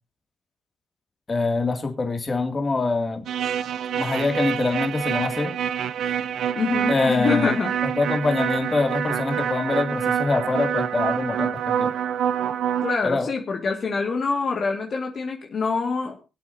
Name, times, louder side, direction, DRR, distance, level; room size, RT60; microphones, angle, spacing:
voice 1, 1.3-3.2 4.0-5.5 6.9-7.5 8.0-11.9 13.0-13.3, left 3 dB, 30° left, 4 dB, 2.4 m, -24 dB
sound 1, 3.3-13.0, right 9 dB, 70° right, 0.7 m, -26 dB
voice 2, 6.5-7.7 12.8-16.2, left 4 dB, 45° left, 2 dB, 1.9 m, -25 dB
23.5 x 8.4 x 2.7 m, 0.27 s
cardioid pair, 90°, 0 cm